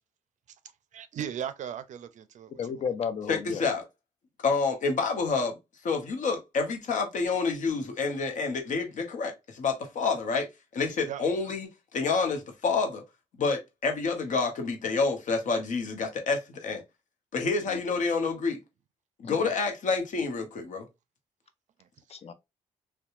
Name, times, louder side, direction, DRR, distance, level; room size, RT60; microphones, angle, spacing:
voice 1, 0.9-2.8 11.0-11.2 21.8-21.9, right 9 dB, 60° right, 0.4 m, -37 dB
voice 2, 2.5-3.6 17.7-17.8 19.2-19.5 22.1-22.3, left 7 dB, 45° left, 0.5 m, -33 dB
voice 3, 3.3-3.8 4.4-5.6 5.8-10.5 10.7-13.0 13.4-16.8 17.3-18.6 19.2-20.9, left 4 dB, 65° left, 0.8 m, -28 dB
2.8 x 2.2 x 2.4 m
supercardioid pair, 60°, 14 cm